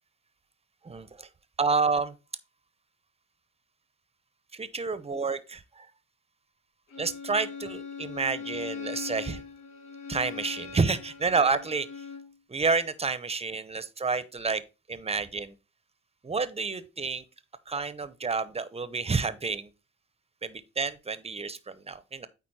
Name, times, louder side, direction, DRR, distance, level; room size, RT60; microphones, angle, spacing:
voice 1, 0.8-1.3 1.6-2.1 4.5-5.9 7.0-9.4 10.1-11.9 12.5-14.6 14.9-15.5 16.2-17.2 17.7-19.7 20.4-22.3, right 4 dB, 20° right, 0.8 m, -29 dB
Bowed string instrument, 6.9-12.4, left 6 dB, 80° left, 2.5 m, -41 dB
9.0 x 4.2 x 4.1 m
cardioid pair, 90°, 30 cm